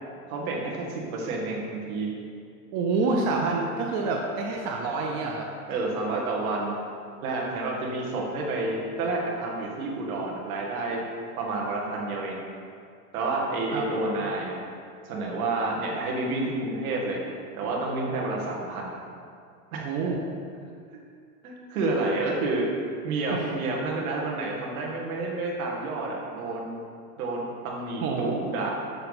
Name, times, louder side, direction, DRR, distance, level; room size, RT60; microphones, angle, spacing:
voice 1, 0.3-2.1 5.7-6.7 7.2-11.0 11.4-12.4 13.1-14.6 15.0-17.2 17.5-19.0 19.7-19.9 20.9-21.0 21.4-22.7 23.0-26.8 27.2-28.7, right 2 dB, 60° right, -1 dB, 1.9 m, -29 dB
voice 2, 2.7-5.5 13.7-13.9 19.8-20.2 28.0-28.4, right 3 dB, 35° right, 0 dB, 0.7 m, -27 dB
6.8 x 6.6 x 4.1 m, 2.3 s
hypercardioid pair, 120°, 47 cm